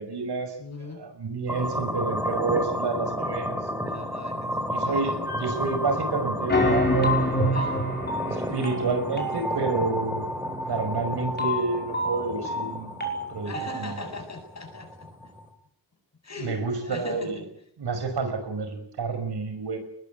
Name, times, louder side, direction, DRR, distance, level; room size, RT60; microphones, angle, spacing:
voice 1, 0.0-0.6 0.9-3.6 4.7-7.3 8.3-10.3 10.7-13.0 13.3-14.0 16.4-17.4 17.8-19.8, right 4 dB, 80° right, 8 dB, 5.7 m, -29 dB
voice 2, 0.6-1.1 3.9-4.5 4.8-5.2 7.5-8.5 13.4-15.3 16.2-17.4, left 3 dB, 40° left, 4 dB, 7.8 m, -40 dB
sound 1, 1.5-15.5, equal, 5° right, 5.0 m, -32 dB
sound 2, 5.3-6.0 6.5-14.0, equal, 25° left, 5.4 m, -28 dB
20.5 x 20.5 x 9.3 m, 0.70 s
wide cardioid pair, 125°, 40 cm